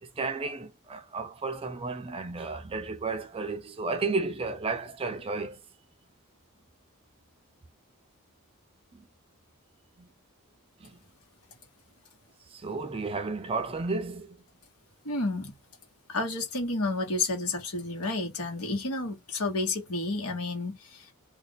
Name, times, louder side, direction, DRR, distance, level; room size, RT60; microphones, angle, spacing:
voice 1, 0.0-5.6 8.9-9.1 10.0-10.1 10.8-11.0 12.5-14.4, right 3 dB, 25° right, 0.4 m, -33 dB
voice 2, 15.0-15.5 16.1-21.1, left 2 dB, 80° left, 1.3 m, -31 dB
2.5 x 2.4 x 3.9 m
head